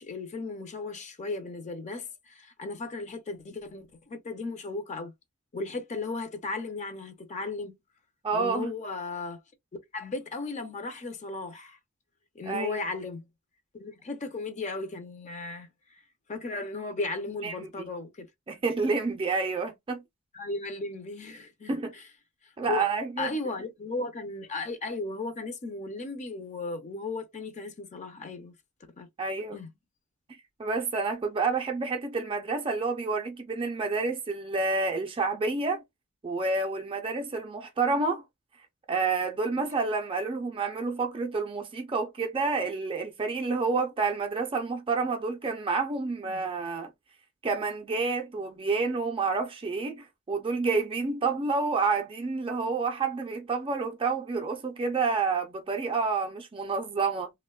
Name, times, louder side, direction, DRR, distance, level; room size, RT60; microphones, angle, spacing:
voice 1, 0.0-5.1 5.5-7.7 8.3-9.4 9.9-11.8 12.3-13.3 13.7-16.0 16.3-18.3 20.3-22.0 22.4-22.9 23.2-28.5 29.0-29.1 29.5-29.7 46.3-46.4, left 3 dB, 30° left, 0.5 m, -36 dB
voice 2, 8.2-8.7 12.5-12.7 17.4-17.9 18.5-20.0 21.7-21.9 22.6-23.3 29.2-29.6 30.6-35.8 36.2-38.2 38.9-46.9 47.4-57.3, right 4 dB, 25° right, 0.4 m, -29 dB
2.9 x 2.1 x 2.2 m
head